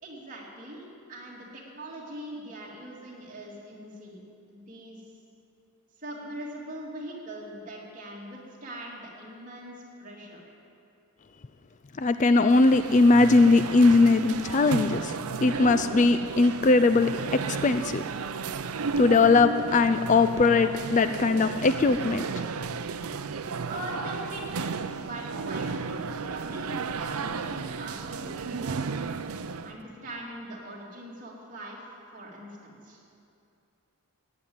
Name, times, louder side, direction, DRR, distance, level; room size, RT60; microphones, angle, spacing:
voice 1, 0.0-4.2 4.5-5.0 6.0-9.7 10.0-10.4 23.6-29.0 29.6-33.0, right 1 dB, 35° right, -3 dB, 2.9 m, -41 dB
voice 2, 12.0-15.1 15.4-17.1 17.5-18.0 19.0-22.2, left 3 dB, 35° left, 10 dB, 0.3 m, -20 dB
sound 1, 12.4-29.8, right 5 dB, 80° right, 0.6 m, -33 dB
14.5 x 9.5 x 8.9 m, 2.6 s
head